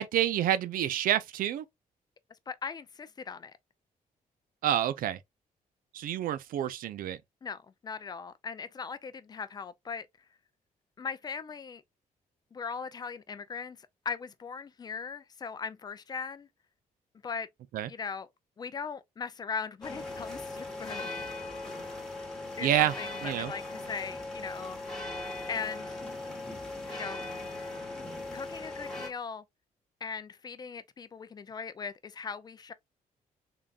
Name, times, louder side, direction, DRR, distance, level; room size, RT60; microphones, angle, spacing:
voice 1, 0.0-1.6 4.6-5.2 5.9-7.2 17.7-17.9 22.6-22.9 23.2-23.5, right 11 dB, 75° right, 0.5 m, -28 dB
voice 2, 2.5-3.5 7.4-10.1 11.0-11.8 12.5-13.8 14.1-16.5 17.2-17.5 17.9-18.3 18.6-21.1 22.6-22.7 23.0-24.8 25.5-26.0 26.9-27.3 28.3-29.4 30.0-32.7, left 5 dB, 30° left, 0.4 m, -39 dB
sound 1, 19.8-29.1, left 2 dB, 5° left, 1.1 m, -39 dB
3.8 x 3.4 x 2.4 m
cardioid pair, 165°, 15 cm